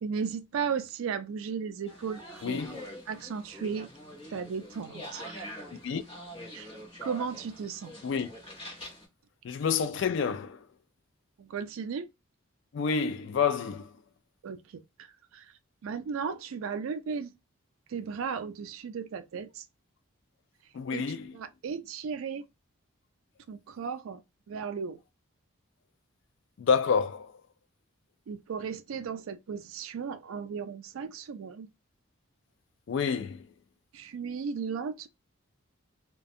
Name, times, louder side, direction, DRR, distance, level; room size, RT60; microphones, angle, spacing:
voice 1, 0.0-2.6 3.1-3.9 4.3-5.5 6.5-6.7 7.0-7.9 11.4-12.1 14.4-15.5 15.8-17.3 17.9-19.6 20.9-21.0 21.3-22.4 23.5-24.2 24.5-25.0 28.3-31.7 33.9-35.1, right 6 dB, 75° right, 0.3 m, -35 dB
sound 1, 1.9-9.0, equal, 25° left, 1.1 m, -45 dB
voice 2, 2.4-2.9 5.8-6.0 8.0-8.3 9.4-10.7 12.7-13.9 20.7-21.4 26.6-27.4 32.9-33.5, left 6 dB, 55° left, 0.3 m, -28 dB
2.4 x 2.2 x 2.6 m
head